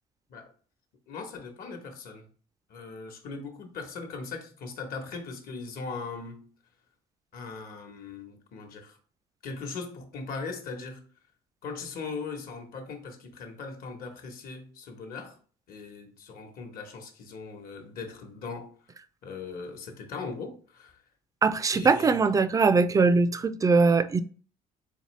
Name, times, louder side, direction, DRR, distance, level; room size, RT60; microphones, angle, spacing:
voice 1, 1.1-2.3 2.7-6.5 7.3-9.0 9.4-11.1 11.6-15.4 15.7-18.7 19.2-21.0 21.7-22.3, left 4 dB, 60° left, 1.1 m, -39 dB
voice 2, 21.4-24.2, right 4 dB, 20° right, 0.3 m, -21 dB
4.1 x 3.3 x 3.1 m
cardioid pair, 110°, 17 cm